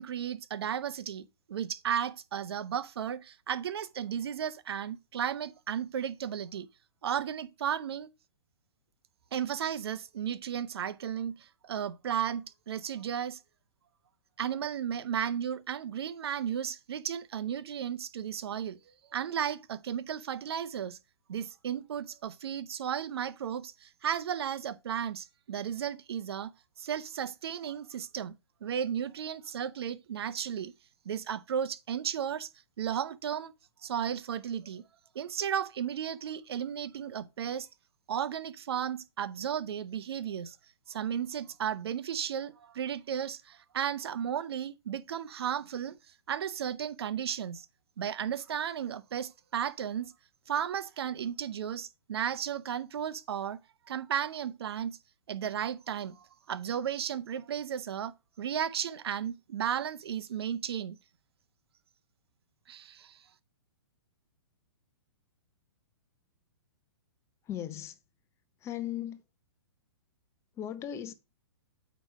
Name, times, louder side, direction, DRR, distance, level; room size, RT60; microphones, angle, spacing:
voice 1, 0.0-6.7 7.0-8.1 9.3-13.4 14.4-18.8 19.1-21.0 21.3-26.5 26.8-28.4 28.6-30.7 31.1-32.5 32.8-33.5 33.8-34.8 35.1-37.7 38.1-40.6 40.9-46.0 46.3-47.7 48.0-50.1 50.5-53.6 53.9-55.0 55.3-61.0 62.7-63.2, right 9 dB, 65° right, 0.7 m, -34 dB
voice 2, 67.4-68.0 68.6-69.2 70.5-71.1, left 11 dB, 20° left, 0.8 m, -37 dB
8.6 x 3.1 x 4.8 m
hypercardioid pair, 130°, 14 cm